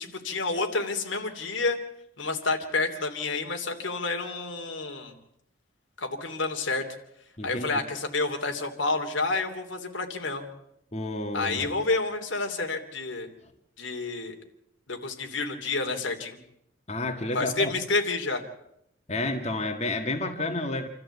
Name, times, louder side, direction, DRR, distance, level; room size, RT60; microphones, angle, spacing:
voice 1, 0.0-1.8 2.2-5.1 6.0-6.8 7.4-10.4 11.3-13.3 13.8-14.4 14.9-16.4 17.3-18.4, left 3 dB, 90° left, 4 dB, 3.0 m, -29 dB
voice 2, 7.4-7.7 10.9-11.7 16.9-17.7 19.1-20.9, left 2 dB, 35° left, 4 dB, 1.9 m, -30 dB
27.5 x 13.5 x 8.3 m, 0.79 s
head